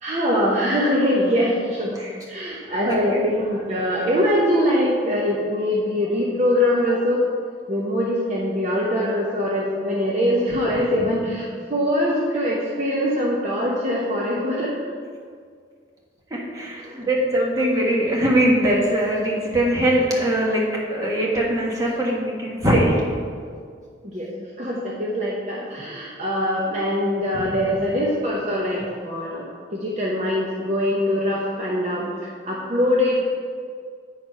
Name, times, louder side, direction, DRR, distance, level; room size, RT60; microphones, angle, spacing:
voice 1, 0.0-7.2 7.7-14.8 16.8-17.0 24.0-33.2, equal, 35° right, -4 dB, 0.8 m, -23 dB
voice 2, 2.8-3.2 16.3-20.6 20.9-23.2, right 1 dB, 20° right, -4 dB, 1.3 m, -21 dB
8.9 x 4.5 x 5.4 m, 2.1 s
head